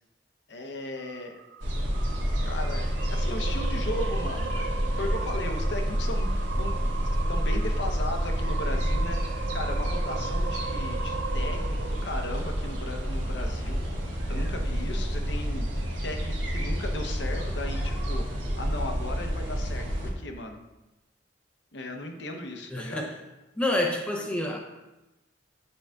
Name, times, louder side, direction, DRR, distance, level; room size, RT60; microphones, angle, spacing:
voice 1, 0.5-1.4 2.4-7.0 7.3-15.7 16.0-20.6 21.7-23.0, left 1 dB, 70° left, 3 dB, 0.7 m, -37 dB
sound 1, 1.0-13.5, right 5 dB, 60° right, 0.3 m, -39 dB
sound 2, 1.6-20.1, equal, 80° right, 1.4 m, -29 dB
voice 2, 22.7-23.1 23.6-24.6, left 1 dB, 5° left, 0 dB, 0.5 m, -28 dB
8.8 x 4.7 x 2.3 m, 1.0 s
head